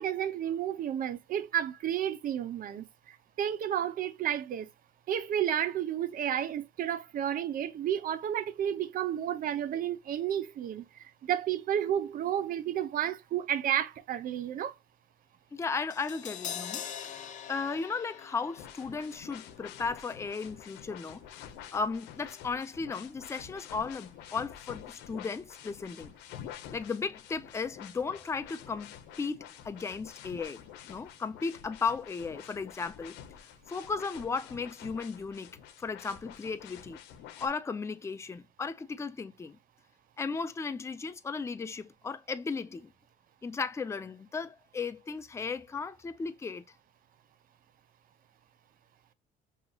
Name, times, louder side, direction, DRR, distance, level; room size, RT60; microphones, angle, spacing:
voice 1, 0.0-4.7 5.1-14.8, right 10 dB, 55° right, 0.7 m, -31 dB
voice 2, 15.5-16.8 17.5-21.4 21.7-26.1 26.7-30.6 30.9-33.2 33.7-35.5 35.8-37.0 37.4-39.6 40.2-42.9 43.4-46.6, left 4 dB, 15° left, 0.5 m, -35 dB
Crash cymbal, 15.9-22.1 22.3-22.5, left 8 dB, 45° left, 0.7 m, -44 dB
sound 1, 18.6-37.5, left 10 dB, 90° left, 0.7 m, -48 dB
5.5 x 2.9 x 2.3 m
cardioid pair, 110°, 17 cm